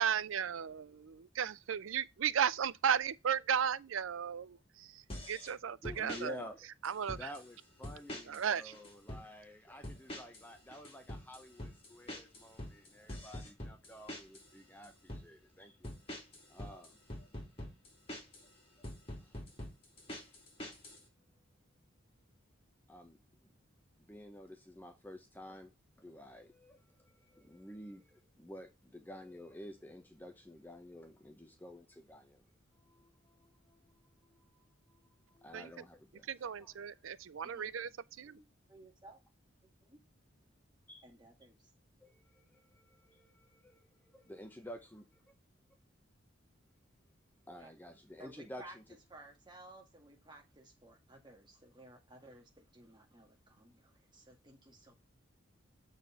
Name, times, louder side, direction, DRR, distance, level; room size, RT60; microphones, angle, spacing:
voice 1, 0.0-4.6 5.3-6.3 6.8-7.2 8.3-8.6 35.5-35.6 36.3-37.9 38.2-38.4, right 8 dB, 80° right, 0.5 m, -34 dB
sound 1, 5.1-5.5 5.8-6.2 6.8-7.5 7.8-8.5 8.7-9.3 9.8-10.5 10.7-14.5 14.8-15.3 15.8-18.4 18.8-21.0, left 1 dB, 30° left, 2.5 m, -45 dB
voice 2, 5.8-15.9 16.5-17.3 17.6-17.7 18.4-18.5 18.8-18.9 19.2-19.4 20.7-20.8 22.9-23.2 24.0-25.7 26.0-32.4 32.7-37.1 40.9-41.1 42.0-45.3 47.5-48.8, left 1 dB, 10° left, 0.7 m, -52 dB
voice 3, 38.2-39.2 39.6-40.0 41.0-41.7 47.6-47.7 48.2-48.8 49.1-54.9, right 1 dB, 20° right, 1.9 m, -57 dB
6.9 x 4.1 x 5.6 m
head